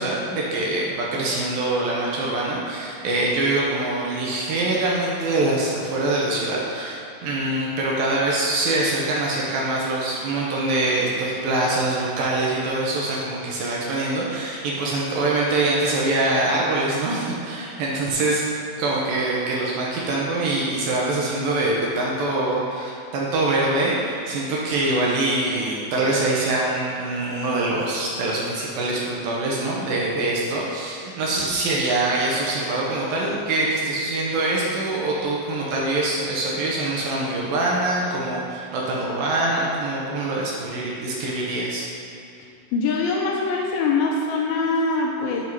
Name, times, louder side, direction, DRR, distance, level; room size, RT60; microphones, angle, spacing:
voice 1, 0.0-18.4 18.8-41.9, right 2 dB, 75° right, -4 dB, 2.4 m, -24 dB
voice 2, 42.7-45.4, left 3 dB, 80° left, -1 dB, 2.3 m, -23 dB
8.3 x 3.6 x 4.6 m, 2.6 s
omnidirectional pair, 4.6 m